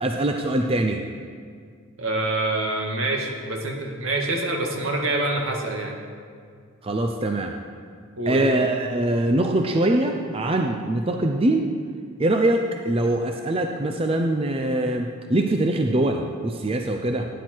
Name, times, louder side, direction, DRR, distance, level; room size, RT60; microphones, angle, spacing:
voice 1, 0.0-1.0 6.8-7.5 8.3-11.7 12.2-17.3, right 1 dB, 25° right, 3 dB, 0.6 m, -23 dB
voice 2, 2.0-6.0 8.2-8.4, right 2 dB, 70° right, 1 dB, 2.0 m, -26 dB
16.5 x 10.0 x 4.6 m, 2.1 s
head